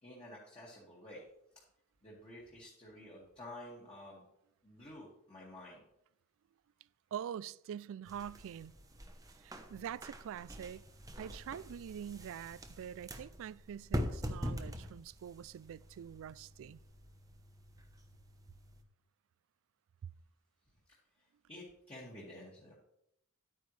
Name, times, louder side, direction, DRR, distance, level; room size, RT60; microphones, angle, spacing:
voice 1, 0.0-1.2 2.0-4.3 4.6-5.8 21.1-22.7, left 1 dB, 25° left, 2.1 m, -51 dB
voice 2, 7.1-8.7 9.4-10.8 11.2-16.8, right 9 dB, 65° right, 0.3 m, -45 dB
sound 1, 8.1-18.8, equal, 15° right, 0.9 m, -44 dB
11.5 x 9.3 x 3.3 m
head